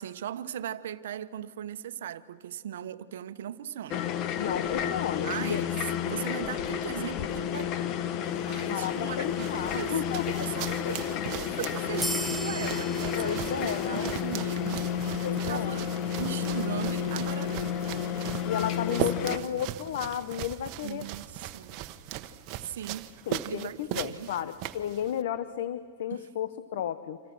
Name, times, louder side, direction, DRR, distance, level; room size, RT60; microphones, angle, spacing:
voice 1, 0.0-4.1 5.2-5.7 6.1-7.7 8.2-11.0 11.4-15.9 16.2-17.6 19.0-19.7 20.8-21.8 22.6-23.1 23.4-24.3 26.1-26.3, right 10 dB, 70° right, 13 dB, 1.0 m, -38 dB
sound 1, 3.9-19.4, left 8 dB, 45° left, 1.3 m, -31 dB
voice 2, 4.4-5.6 8.7-10.4 10.8-11.0 13.2-14.1 15.2-15.8 18.4-21.0 23.3-27.2, left 10 dB, 65° left, 13 dB, 0.9 m, -33 dB
sound 2, 8.2-25.2, right 13 dB, 45° right, 1.1 m, -39 dB
sound 3, 12.0-15.0, right 1 dB, 5° left, 1.3 m, -39 dB
28.0 x 26.5 x 6.3 m, 2.1 s
hypercardioid pair, 115°, 0 cm